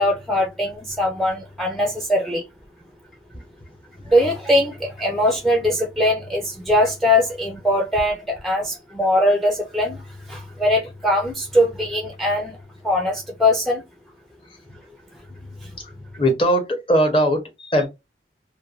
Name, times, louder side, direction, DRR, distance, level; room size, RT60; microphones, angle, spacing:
voice 1, 0.0-2.4 4.0-10.0 10.3-12.6 12.8-13.8 15.6-15.7, left 1 dB, ahead, 0.4 m, -21 dB
voice 2, 16.2-17.9, equal, 30° left, 0.8 m, -19 dB
3.2 x 2.1 x 2.3 m
head